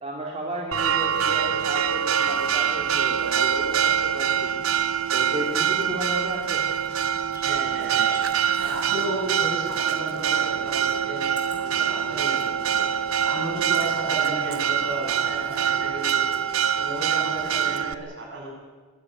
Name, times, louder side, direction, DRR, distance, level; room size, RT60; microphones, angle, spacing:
voice 1, 0.0-4.7 5.1-6.7, right 1 dB, 30° right, -2 dB, 2.9 m, -33 dB
Church bell, 0.7-17.9, right 8 dB, 75° right, 1.0 m, -24 dB
sound 1, 3.5-8.8, right 1 dB, 15° right, 2.3 m, -47 dB
voice 2, 7.4-8.1 8.6-11.2 11.6-12.9 13.2-16.2 16.7-18.5, right 1 dB, 55° right, -1 dB, 7.9 m, -33 dB
sound 2, 11.4-12.0 12.7-12.9 13.7-14.0 14.4-14.5, left 4 dB, 20° left, 3.5 m, -46 dB
22.5 x 15.5 x 9.2 m, 1.4 s
head